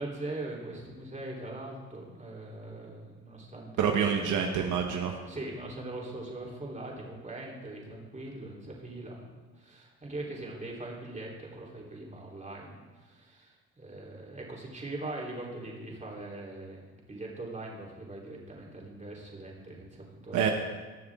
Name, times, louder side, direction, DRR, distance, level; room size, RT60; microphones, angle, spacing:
voice 1, 0.0-4.4 5.3-20.5, right 2 dB, 25° right, -3 dB, 3.5 m, -41 dB
voice 2, 3.8-5.1 20.3-20.5, right 7 dB, 80° right, 3 dB, 1.1 m, -27 dB
20.5 x 6.9 x 3.6 m, 1.4 s
cardioid pair, 90°, 30 cm